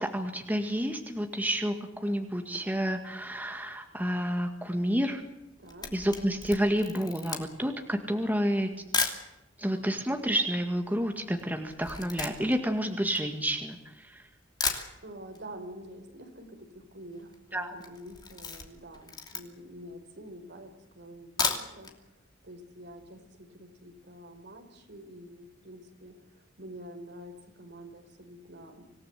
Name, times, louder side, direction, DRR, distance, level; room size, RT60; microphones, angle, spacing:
voice 1, 0.0-1.7 2.0-5.2 5.9-8.7 9.6-14.3 17.5-17.7, equal, 10° right, 4 dB, 1.8 m, -29 dB
Camera, 5.4-9.3 10.0-10.1 10.2-13.9 14.3-14.4 14.6-15.4 15.7-15.8 16.1-16.2 16.4-16.8 17.1-17.4 17.7-19.8 20.3-20.4 21.2-22.0 22.3-22.4 22.8-22.9, left 4 dB, 20° left, 2.9 m, -34 dB
voice 2, 5.6-5.9 15.0-28.8, equal, 60° right, 4 dB, 4.8 m, -47 dB
26.0 x 17.5 x 8.2 m, 0.98 s
head